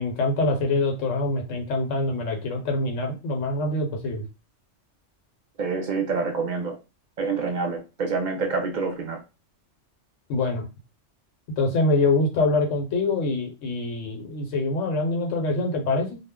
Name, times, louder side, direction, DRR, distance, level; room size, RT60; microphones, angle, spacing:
voice 1, 0.0-4.3 10.3-10.7 11.6-16.2, left 2 dB, 85° left, 3 dB, 1.1 m, -25 dB
voice 2, 5.6-6.8 7.2-9.2, right 4 dB, 60° right, 4 dB, 0.4 m, -27 dB
2.3 x 2.0 x 3.5 m, 0.28 s
omnidirectional pair, 1.3 m